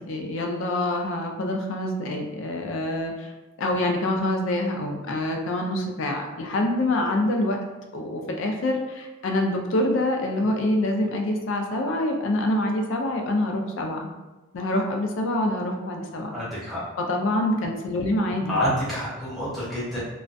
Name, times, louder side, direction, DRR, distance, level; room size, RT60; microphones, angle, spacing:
voice 1, 0.0-3.3 3.6-7.6 7.9-14.1 14.5-16.4 17.1-18.6, left 1 dB, 55° left, 2 dB, 0.3 m, -26 dB
voice 2, 16.3-16.8 18.5-20.0, equal, ahead, -10 dB, 0.7 m, -27 dB
2.3 x 2.1 x 2.4 m, 1.1 s
head